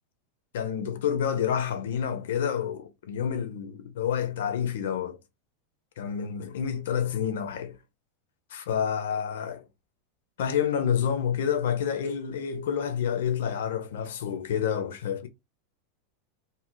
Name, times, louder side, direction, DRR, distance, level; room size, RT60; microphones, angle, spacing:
voice 1, 0.5-5.2 6.0-7.8 8.5-9.6 10.4-15.3, left 8 dB, 70° left, 0.5 m, -28 dB
2.5 x 2.1 x 3.5 m
hypercardioid pair, 95°, 0 cm